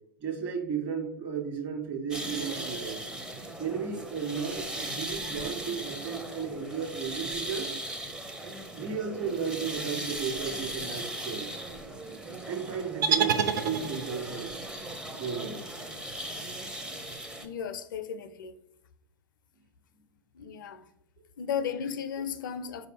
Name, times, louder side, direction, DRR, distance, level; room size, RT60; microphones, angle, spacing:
voice 1, 0.2-3.0 3.6-7.7 8.7-11.5 12.5-14.6 15.2-15.8, right 6 dB, 40° right, 1.3 m, -34 dB
sound 1, 2.1-17.5, right 1 dB, 5° right, 0.5 m, -38 dB
sound 2, 13.0-14.3, right 6 dB, 65° right, 0.4 m, -27 dB
voice 2, 17.3-18.6 20.3-20.9 21.4-22.9, left 7 dB, 70° left, 0.4 m, -35 dB
4.4 x 2.6 x 4.0 m
figure-of-eight pair, 85°, 11 cm